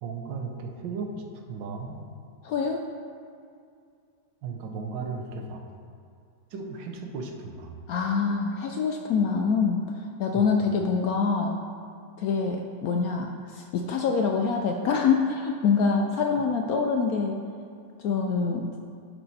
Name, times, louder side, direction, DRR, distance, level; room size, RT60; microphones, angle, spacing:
voice 1, 0.0-2.0 4.4-5.7 6.5-7.8 10.3-10.5, right 4 dB, 85° right, 2 dB, 1.6 m, -36 dB
voice 2, 2.4-2.8 7.9-9.8 10.2-11.6 12.2-17.4 18.0-18.8, left 5 dB, 75° left, 3 dB, 0.8 m, -25 dB
10.5 x 4.6 x 4.1 m, 2.4 s
omnidirectional pair, 2.0 m